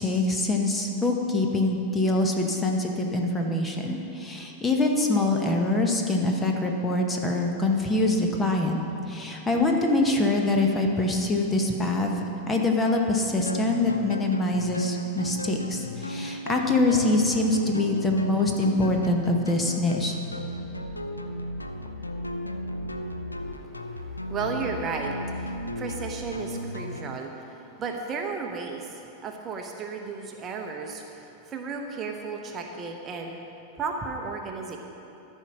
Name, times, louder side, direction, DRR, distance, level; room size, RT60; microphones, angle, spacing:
voice 1, 0.0-12.1 12.5-20.2, left 2 dB, 15° left, 2 dB, 1.0 m, -24 dB
sound 1, 13.5-27.2, left 1 dB, 85° left, 0.5 m, -35 dB
voice 2, 24.3-33.4 33.8-34.8, right 4 dB, 25° right, 2 dB, 0.9 m, -34 dB
13.5 x 5.5 x 6.0 m, 2.9 s
figure-of-eight pair, 90°, 0 cm